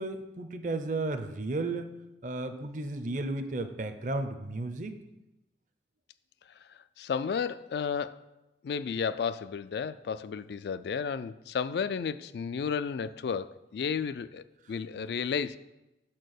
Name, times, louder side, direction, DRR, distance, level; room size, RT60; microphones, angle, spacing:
voice 1, 0.0-1.9 2.2-5.0, right 2 dB, 45° right, 8 dB, 0.6 m, -33 dB
voice 2, 7.0-8.2 8.6-15.6, left 6 dB, 65° left, 14 dB, 0.3 m, -32 dB
6.2 x 4.4 x 6.5 m, 0.97 s
head